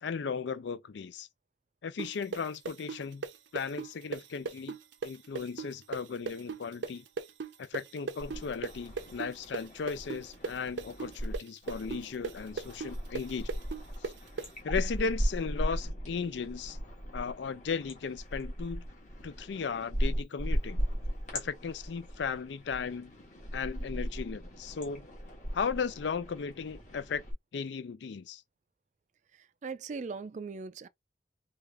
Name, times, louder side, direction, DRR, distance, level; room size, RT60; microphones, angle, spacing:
voice 1, 0.0-1.3 1.8-3.3 3.5-4.8 5.0-7.0 7.6-13.5 14.0-14.1 14.6-16.8 17.1-18.8 19.2-20.8 21.3-23.1 23.5-25.1 25.5-27.2 27.5-28.4, left 5 dB, 75° left, 0.4 m, -36 dB
sound 1, 2.0-9.6 9.9-14.5, right 4 dB, 85° right, 0.6 m, -37 dB
sound 2, 8.2-11.4 11.6-27.3, equal, 40° left, 1.5 m, -37 dB
voice 2, 29.6-30.9, right 4 dB, 40° right, 0.3 m, -39 dB
3.4 x 2.5 x 3.4 m
head